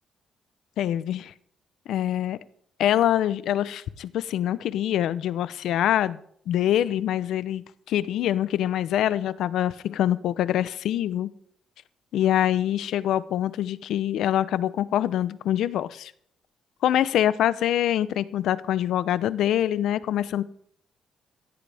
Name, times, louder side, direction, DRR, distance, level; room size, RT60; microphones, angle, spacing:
voice 1, 0.8-1.3 1.9-2.4 2.8-6.2 6.5-11.3 12.1-16.1 16.8-20.4, left 11 dB, 80° left, 16 dB, 0.7 m, -25 dB
16.5 x 14.5 x 3.5 m, 0.65 s
cardioid pair, 90°, 0 cm